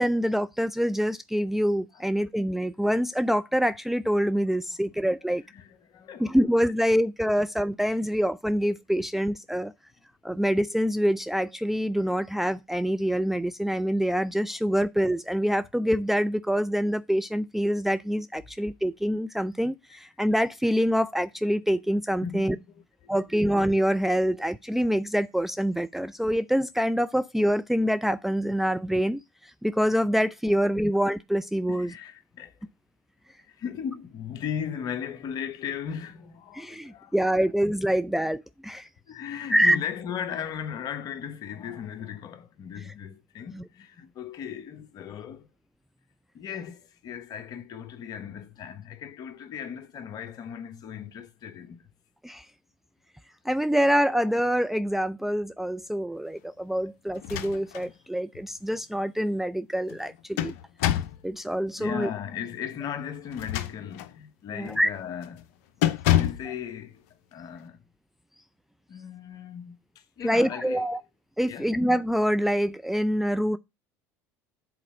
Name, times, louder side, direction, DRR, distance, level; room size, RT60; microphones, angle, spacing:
voice 1, 0.0-5.4 6.2-9.7 10.2-22.6 23.1-31.9 36.5-38.9 39.5-39.8 43.5-43.6 52.2-52.4 53.5-60.5 61.2-62.1 64.5-64.9 70.2-71.0 71.4-73.6, equal, 5° right, 0.4 m, -25 dB
voice 2, 5.5-6.4 9.6-9.7 22.2-23.4 31.7-32.5 33.4-37.3 39.1-45.5 46.3-51.9 61.1-61.2 61.8-65.5 66.1-67.8 68.9-70.9 71.5-71.8, left 8 dB, 50° left, 1.2 m, -37 dB
sound 1, 57.2-57.9 58.3-58.4 59.9-61.2 63.3-64.2 64.7-64.9 65.2-65.4 65.8-66.5, left 12 dB, 75° left, 0.7 m, -27 dB
7.7 x 4.2 x 6.1 m
hypercardioid pair, 75°, 8 cm